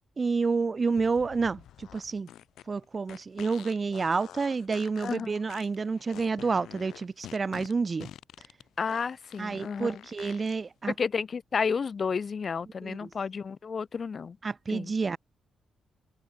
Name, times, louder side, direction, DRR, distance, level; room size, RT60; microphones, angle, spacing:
voice 1, 0.2-2.3 2.7-8.1 9.4-10.9 12.8-13.1 14.4-15.2, right 4 dB, 25° right, 0.4 m, -29 dB
sound 1, 0.9-10.6, left 11 dB, 80° left, 5.3 m, -48 dB
voice 2, 5.0-5.4 8.8-9.9 10.9-14.4 14.7-14.9, left 5 dB, 35° left, 0.4 m, -31 dB
open air
cardioid pair, 155°, 0 cm